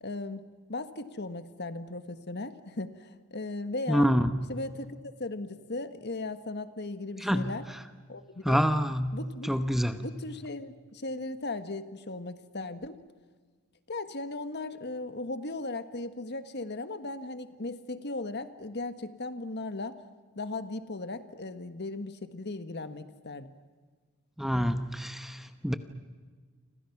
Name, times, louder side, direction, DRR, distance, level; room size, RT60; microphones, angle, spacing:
voice 1, 0.0-0.4 0.7-4.1 4.5-4.9 5.2-7.7 8.1-8.6 9.1-9.5 10.0-13.0 13.9-20.0 20.3-23.5, left 2 dB, 50° left, 10 dB, 1.5 m, -37 dB
voice 2, 3.9-4.5 7.2-7.5 8.4-10.0 24.4-25.7, equal, ahead, 9 dB, 1.0 m, -27 dB
29.5 x 26.0 x 6.0 m, 1.5 s
head